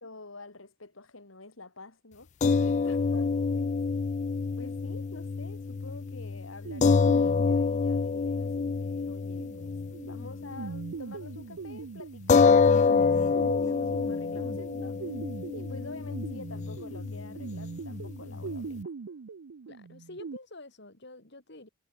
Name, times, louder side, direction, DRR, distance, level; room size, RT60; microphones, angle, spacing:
voice 1, 0.0-2.3 2.6-3.7 4.6-9.7 10.0-13.3 13.6-15.0 15.5-18.8, left 3 dB, 90° left, 3.5 m, -47 dB
sound 1, 2.4-10.9 11.2-11.4 12.3-18.8, left 5 dB, 35° left, 0.3 m, -27 dB
sound 2, 6.7-20.4, right 5 dB, 85° right, 0.5 m, -42 dB
voice 2, 19.7-21.7, left 2 dB, 60° left, 4.4 m, -47 dB
head